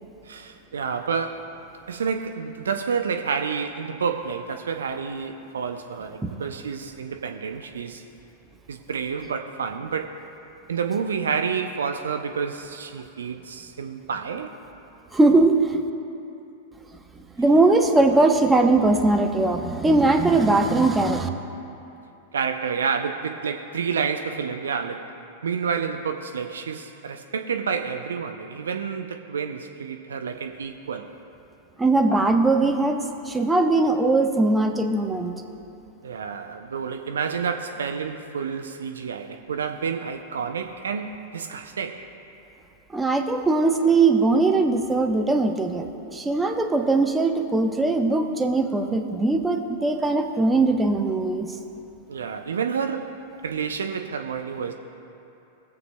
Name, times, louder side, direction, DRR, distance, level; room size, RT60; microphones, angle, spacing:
voice 1, 0.2-1.6 1.9-8.0 8.7-10.2 10.7-14.5 22.3-25.1 25.4-31.1 36.0-42.1 52.1-54.7, right 6 dB, 70° right, 6 dB, 0.5 m, -29 dB
voice 2, 15.1-15.8 17.4-21.3 31.8-33.0 33.3-35.3 42.9-51.5, right 3 dB, 10° right, 4 dB, 0.8 m, -20 dB
21.5 x 7.8 x 2.2 m, 2.9 s
figure-of-eight pair, 95°, 0 cm